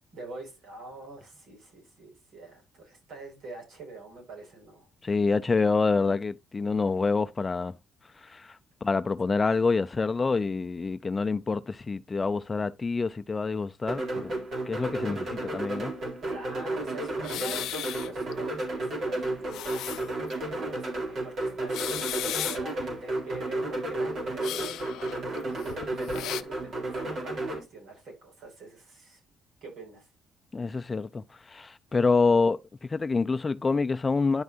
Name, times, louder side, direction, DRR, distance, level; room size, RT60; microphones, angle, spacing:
voice 1, 0.1-4.9 5.4-5.7 16.3-24.8 25.5-29.2 29.6-30.1 31.9-32.3, right 3 dB, 75° right, 5.6 m, -45 dB
voice 2, 5.0-7.7 8.3-8.5 8.8-14.3 14.7-15.9 30.5-31.2 31.5-32.6 32.9-34.4, left 4 dB, 30° left, 0.5 m, -26 dB
sound 1, 13.9-27.6, right 2 dB, 55° right, 3.6 m, -32 dB
sound 2, 17.2-18.3 18.7-18.8 19.3-20.3 20.8-20.9 21.6-22.8 24.4-26.4, left 13 dB, 85° left, 0.4 m, -35 dB
10.5 x 6.0 x 2.6 m
cardioid pair, 90°, 0 cm